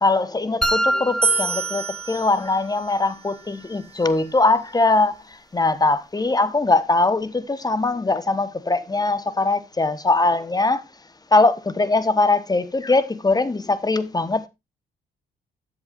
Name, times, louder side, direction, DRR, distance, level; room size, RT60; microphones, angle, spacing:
voice 1, 0.0-5.1 5.5-10.8 11.3-14.5, left 3 dB, 20° left, 1.2 m, -21 dB
sound 1, 0.6-2.6, right 1 dB, ahead, 1.5 m, -25 dB
sound 2, 1.2-4.4, right 4 dB, 30° right, 1.4 m, -29 dB
13.0 x 8.1 x 2.6 m
cardioid pair, 90°, 20 cm